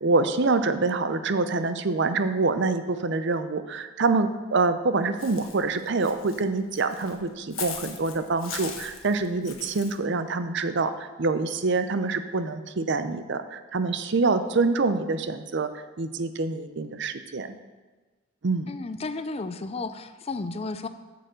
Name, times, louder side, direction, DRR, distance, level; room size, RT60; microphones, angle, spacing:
voice 1, 0.0-15.7 16.0-17.6 18.4-18.7, right 3 dB, 60° right, 11 dB, 0.6 m, -26 dB
Walk footsteps / Bird, 5.2-10.0, left 7 dB, 90° left, 1.2 m, -40 dB
voice 2, 18.7-20.9, left 3 dB, 30° left, 11 dB, 0.5 m, -33 dB
8.2 x 6.8 x 6.4 m, 1.3 s
head